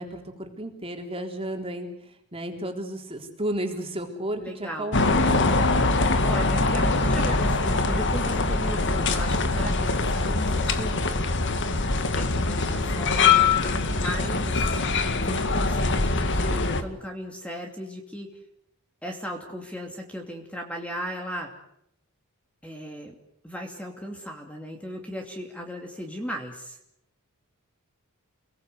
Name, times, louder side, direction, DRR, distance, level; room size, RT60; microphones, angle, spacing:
voice 1, 0.0-5.5, right 1 dB, 25° right, 2 dB, 3.9 m, -33 dB
voice 2, 4.4-5.0 6.2-11.2 12.1-14.8 15.2-18.3 19.0-21.5 22.6-23.2 23.4-26.8, equal, 5° left, 1 dB, 2.8 m, -36 dB
sound 1, 4.9-16.8, left 3 dB, 55° left, 1.9 m, -23 dB
29.5 x 19.0 x 8.2 m, 0.76 s
head